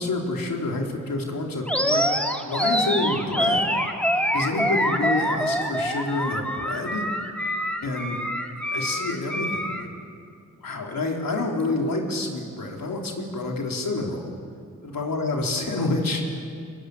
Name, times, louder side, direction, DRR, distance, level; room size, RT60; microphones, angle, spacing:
voice 1, 0.0-2.0 2.4-3.7 4.3-7.1 7.8-8.2 8.7-9.9 10.6-14.3 14.9-16.5, left 2 dB, 80° left, 0 dB, 4.0 m, -28 dB
Animal, 1.7-9.8, equal, 5° left, 2.6 m, -25 dB
24.5 x 20.0 x 9.8 m, 2.3 s
cardioid pair, 55°, 34 cm